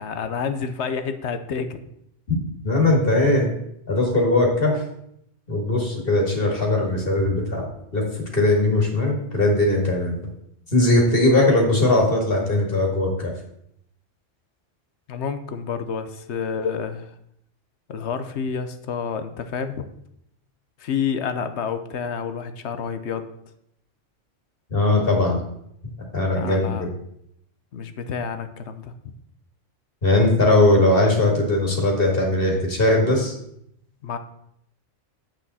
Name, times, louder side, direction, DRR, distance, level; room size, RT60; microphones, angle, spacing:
voice 1, 0.0-1.9 15.1-17.1 17.9-19.9 20.8-23.3 26.3-26.9 27.7-28.9 34.0-34.2, left 6 dB, 65° left, 10 dB, 1.0 m, -29 dB
voice 2, 2.6-3.5 3.9-4.8 5.5-10.2 10.7-13.3 24.7-25.4 26.1-26.9 30.0-33.3, left 2 dB, 45° left, 0 dB, 2.4 m, -19 dB
9.0 x 8.0 x 4.1 m, 0.74 s
omnidirectional pair, 1.3 m